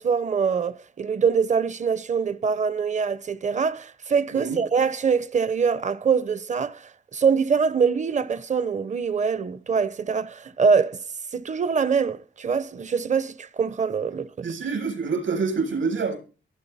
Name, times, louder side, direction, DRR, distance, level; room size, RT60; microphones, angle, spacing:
voice 1, 0.0-11.0 11.3-14.5, right 6 dB, 35° right, 0.6 m, -24 dB
voice 2, 14.4-16.2, right 5 dB, 75° right, 8.0 m, -26 dB
22.5 x 9.6 x 4.1 m
wide cardioid pair, 165°, 20 cm